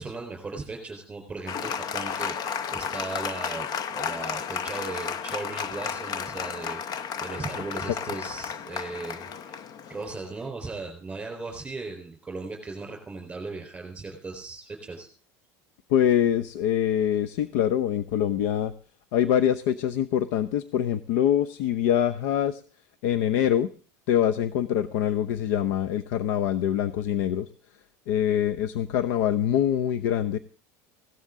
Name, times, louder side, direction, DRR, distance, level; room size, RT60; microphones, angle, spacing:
voice 1, 0.0-9.6 9.9-15.1, right 3 dB, 10° right, 3 dB, 4.0 m, -37 dB
Applause, 1.5-10.5, left 7 dB, 45° left, 0.8 m, -33 dB
voice 2, 15.9-18.7 19.1-22.6 23.0-23.7 24.1-27.5 28.1-30.4, left 10 dB, 80° left, 14 dB, 0.7 m, -24 dB
16.5 x 13.0 x 3.7 m, 0.40 s
cardioid pair, 140°, 9 cm